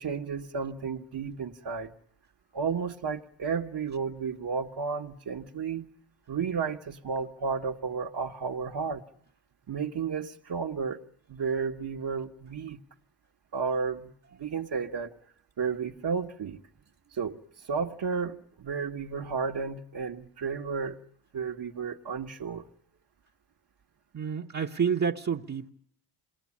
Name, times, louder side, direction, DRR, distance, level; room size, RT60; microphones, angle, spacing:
voice 1, 0.0-1.9 2.5-5.9 6.3-9.0 9.7-11.0 11.3-12.8 13.5-14.1 14.4-15.1 15.6-16.6 17.1-21.0 21.3-22.7, right 5 dB, 50° right, 1.6 m, -32 dB
voice 2, 24.1-25.7, right 6 dB, 35° right, 1.3 m, -29 dB
27.5 x 20.0 x 8.6 m
cardioid pair, 70°, 48 cm